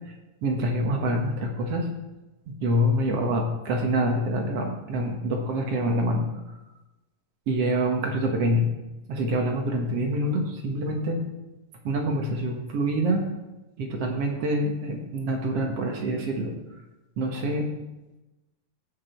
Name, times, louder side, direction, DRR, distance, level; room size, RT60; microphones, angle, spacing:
voice 1, 0.4-1.9 2.6-6.2 7.5-8.7 9.1-11.2 11.8-13.2 13.8-16.5 17.2-17.7, right 1 dB, 55° right, 2 dB, 2.1 m, -26 dB
17.0 x 6.1 x 4.4 m, 1.0 s
omnidirectional pair, 3.7 m